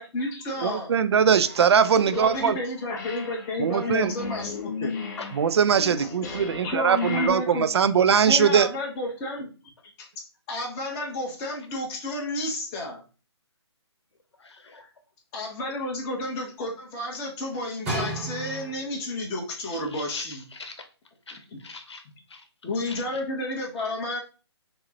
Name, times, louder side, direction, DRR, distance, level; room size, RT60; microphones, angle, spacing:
voice 1, 0.0-0.9 2.1-5.0 6.0-7.7 8.2-9.5 10.0-10.1 10.5-13.0 15.3-20.4 21.5-21.6 22.6-24.2, left 2 dB, 15° left, 0.8 m, -31 dB
voice 2, 0.6-2.6 3.6-4.1 5.4-8.7, right 7 dB, 70° right, 0.4 m, -21 dB
sound 1, 1.4-2.6 2.9-7.3, left 5 dB, 40° left, 0.9 m, -37 dB
voice 3, 14.4-14.9 19.6-20.9 21.3-22.5 22.8-23.2, left 3 dB, 75° left, 1.0 m, -43 dB
sound 2, 17.8-19.1 19.9-20.0, right 2 dB, 10° right, 0.8 m, -32 dB
5.7 x 2.0 x 2.8 m
hypercardioid pair, 155°, 14 cm